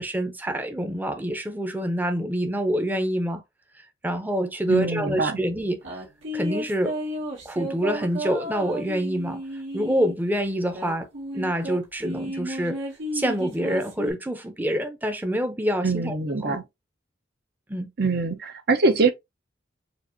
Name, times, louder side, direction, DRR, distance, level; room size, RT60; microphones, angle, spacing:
voice 1, 0.0-3.4 4.0-5.8 6.3-7.0 7.4-9.4 9.7-11.1 11.3-12.8 13.1-16.2 16.4-16.6 17.7-17.9, equal, 10° right, 0.6 m, -26 dB
voice 2, 4.7-5.4 15.8-16.6 18.0-19.1, right 3 dB, 55° right, 0.7 m, -23 dB
sound 1, 5.8-10.2 10.7-14.1, right 1 dB, 80° right, 2.3 m, -33 dB
6.9 x 2.5 x 2.7 m
head